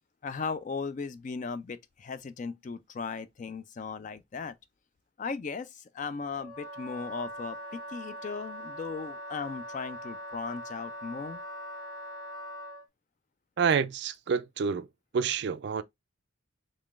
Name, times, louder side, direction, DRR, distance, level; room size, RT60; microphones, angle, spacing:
voice 1, 0.2-4.6 5.2-11.4, left 4 dB, 35° left, 0.3 m, -37 dB
Wind instrument woodwind instrument, 6.3-12.9, equal, 20° left, 0.8 m, -42 dB
voice 2, 13.6-14.9 15.1-15.8, right 6 dB, 55° right, 0.3 m, -28 dB
3.6 x 3.2 x 2.4 m
head